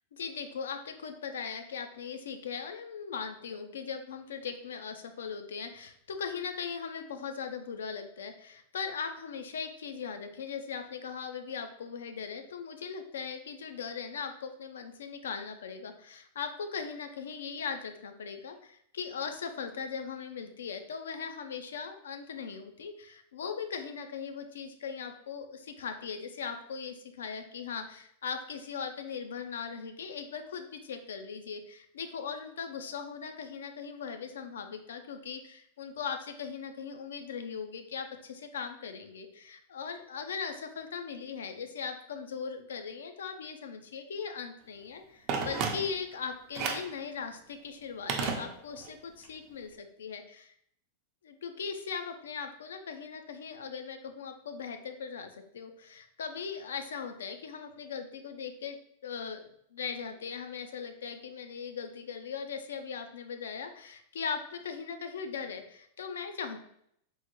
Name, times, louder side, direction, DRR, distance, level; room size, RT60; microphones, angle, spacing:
voice 1, 0.1-50.5 51.2-59.5 59.7-66.6, left 6 dB, 85° left, 7 dB, 0.4 m, -39 dB
Telephone, 45.3-46.2 46.5-47.0 48.1-48.9 49.2-49.3, right 5 dB, 45° right, 0.6 m, -33 dB
3.5 x 2.1 x 3.0 m, 0.70 s
hypercardioid pair, 110°, 0 cm